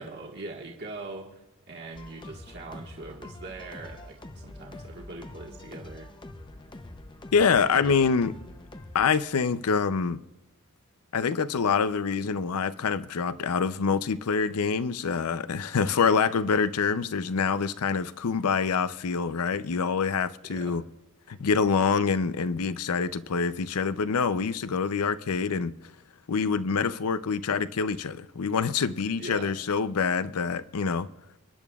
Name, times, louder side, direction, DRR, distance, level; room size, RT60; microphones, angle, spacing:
voice 1, 0.0-6.1 7.8-8.1 20.4-20.8 29.2-29.5, right 3 dB, 50° right, 1.6 m, -42 dB
sound 1, 1.9-9.1, left 1 dB, 20° left, 0.7 m, -45 dB
voice 2, 7.3-8.3 8.9-10.2 11.1-20.8 21.3-25.7 26.3-31.1, left 5 dB, 75° left, 0.5 m, -26 dB
29.0 x 10.5 x 2.4 m
head